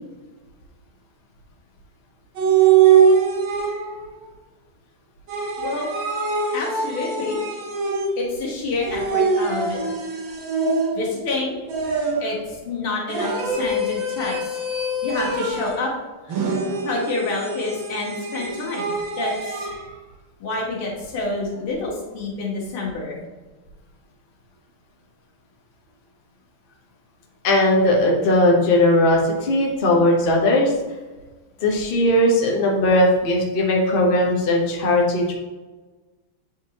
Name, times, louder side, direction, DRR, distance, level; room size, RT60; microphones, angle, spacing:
sound 1, 2.4-4.1 5.3-8.4 8.8-11.2 11.7-12.4 13.1-15.9 16.3-19.8, right 5 dB, 70° right, 1.8 m, -22 dB
voice 1, 5.6-5.9 6.5-7.4 8.2-9.8 11.0-11.6 12.2-14.6 15.0-15.9 16.2-16.4 16.8-19.7 20.4-23.2, left 3 dB, 80° left, -3 dB, 2.4 m, -28 dB
voice 2, 27.4-30.7 31.6-35.3, left 1 dB, 35° left, -2 dB, 0.9 m, -18 dB
8.1 x 4.4 x 2.9 m, 1.2 s
omnidirectional pair, 2.3 m